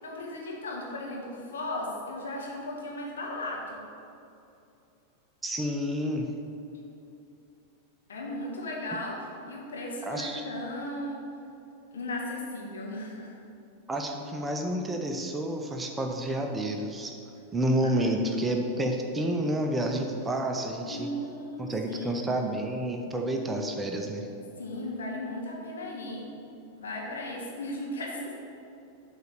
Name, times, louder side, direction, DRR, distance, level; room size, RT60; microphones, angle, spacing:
voice 1, 0.0-3.8 8.1-11.2 11.9-13.3 17.8-18.1 20.9-22.2 24.6-26.3 26.7-28.3, left 1 dB, 65° left, -2 dB, 1.6 m, -36 dB
voice 2, 5.4-6.3 10.0-10.4 13.9-17.1 17.5-21.1 21.6-24.3, right 1 dB, 15° right, 3 dB, 0.7 m, -29 dB
8.1 x 4.1 x 6.7 m, 2.7 s
figure-of-eight pair, 90°, 0 cm